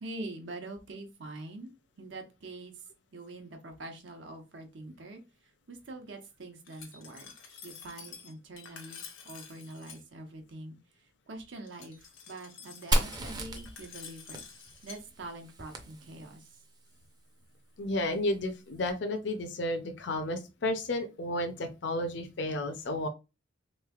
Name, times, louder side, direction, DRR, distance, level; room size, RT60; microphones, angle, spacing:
voice 1, 0.0-2.9 3.1-5.2 5.7-14.4 14.8-16.5, right 2 dB, 75° right, 4 dB, 0.9 m, -45 dB
Glass, 6.6-10.0 11.7-15.0, left 6 dB, 90° left, 0.9 m, -49 dB
Fire, 12.9-16.6, right 1 dB, 20° right, 0.5 m, -34 dB
voice 2, 17.8-23.1, left 1 dB, 65° left, 5 dB, 0.5 m, -32 dB
3.6 x 3.1 x 2.3 m, 0.27 s
head